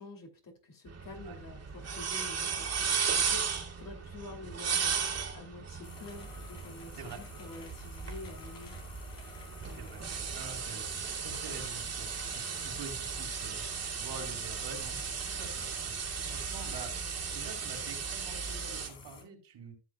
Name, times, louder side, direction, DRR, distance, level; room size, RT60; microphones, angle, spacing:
voice 1, 0.0-5.0 5.3-8.7, left 2 dB, 50° left, 2 dB, 2.8 m, -48 dB
sound 1, 0.9-18.9, right 6 dB, 35° right, 2.4 m, -36 dB
sound 2, 5.8-19.2, left 5 dB, 75° left, 3.7 m, -51 dB
voice 2, 9.7-13.7 13.9-16.0 16.3-19.8, right 4 dB, 70° right, 4 dB, 4.0 m, -47 dB
14.5 x 6.6 x 2.3 m, 0.31 s
cardioid pair, 95°, 43 cm